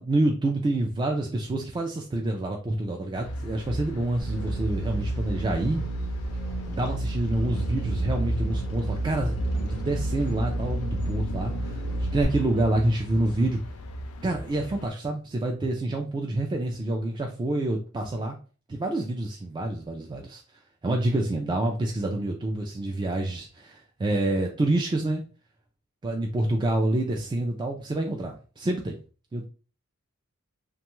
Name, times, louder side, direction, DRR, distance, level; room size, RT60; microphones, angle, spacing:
voice 1, 0.0-5.8 6.7-11.8 12.1-13.6 14.2-18.4 18.7-20.4 20.8-25.2 26.0-29.0 29.3-29.4, right 2 dB, 20° right, 0.3 m, -27 dB
sound 1, 3.1-14.9, equal, 75° left, 0.4 m, -34 dB
sound 2, 4.2-12.2, right 2 dB, 90° right, 1.2 m, -32 dB
2.9 x 2.3 x 2.9 m
head